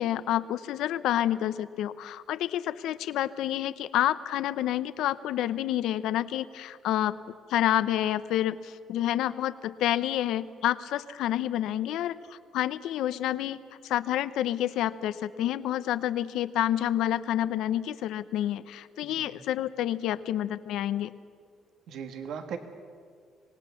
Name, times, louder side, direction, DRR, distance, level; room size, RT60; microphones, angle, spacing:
voice 1, 0.0-7.2 7.5-12.2 12.5-13.6 13.8-21.1, left 12 dB, 80° left, 14 dB, 0.8 m, -28 dB
voice 2, 19.0-19.4 21.9-22.6, right 7 dB, 70° right, 7 dB, 1.7 m, -38 dB
26.0 x 18.5 x 7.0 m, 2.1 s
cardioid pair, 130°, 0 cm